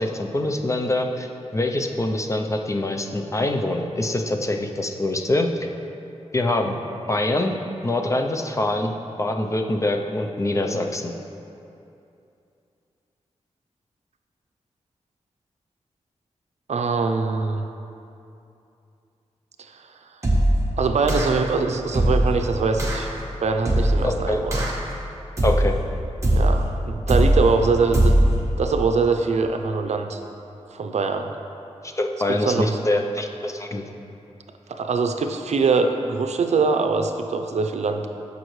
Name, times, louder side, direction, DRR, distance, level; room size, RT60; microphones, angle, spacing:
voice 1, 0.0-5.5 6.3-6.8 7.1-7.5 7.8-11.1 24.0-24.4 25.4-25.8 31.8-33.8, left 1 dB, 25° left, 4 dB, 0.5 m, -24 dB
voice 2, 16.7-17.7 19.7-19.8 20.8-23.1 23.4-24.6 26.4-28.2 28.6-30.2 30.7-31.3 32.4-32.8 34.7-38.1, right 4 dB, 70° right, 6 dB, 0.5 m, -23 dB
sound 1, 20.2-20.7 21.1-21.5 21.9-22.4 22.8-23.1 23.7-24.1 24.5-24.9 25.4-25.8 26.2-26.6 27.1-27.5 27.9-28.4, right 1 dB, 25° right, 1.3 m, -19 dB
14.0 x 5.2 x 3.2 m, 2.7 s
wide cardioid pair, 120°, 12 cm